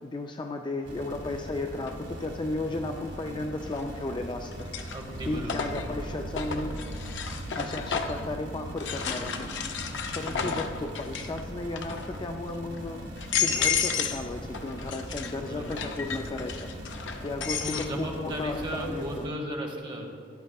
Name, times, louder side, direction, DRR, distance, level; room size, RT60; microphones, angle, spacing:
voice 1, 0.0-4.7 5.3-6.8 7.5-9.5 10.2-13.1 13.4-16.7 17.2-19.3, left 2 dB, 25° left, 4 dB, 0.4 m, -34 dB
sound 1, 0.8-19.3, equal, 70° right, 1.5 m, -41 dB
sound 2, 1.9-2.0 3.7-4.1 4.5-8.3 8.8-11.4 11.7-12.2 12.7-12.8 13.2-14.2 14.5-17.9, left 7 dB, 75° left, 0.6 m, -32 dB
voice 2, 4.9-6.2 10.2-10.9 15.4-16.1 17.6-20.2, equal, 25° right, 1 dB, 1.2 m, -36 dB
sound 3, 5.1-11.9, right 1 dB, 85° right, 0.7 m, -42 dB
13.5 x 10.0 x 2.3 m, 2.2 s
head